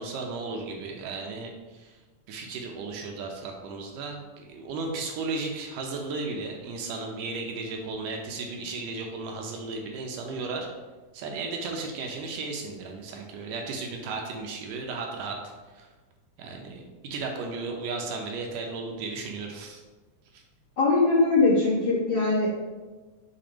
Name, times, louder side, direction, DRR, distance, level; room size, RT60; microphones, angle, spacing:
voice 1, 0.0-2.0 2.3-10.7 11.1-15.9 16.4-19.8 20.3-20.4, right 3 dB, 75° right, 1 dB, 2.3 m, -35 dB
voice 2, 20.8-22.6, left 3 dB, 40° left, -9 dB, 1.9 m, -21 dB
6.0 x 4.3 x 5.0 m, 1.3 s
omnidirectional pair, 4.0 m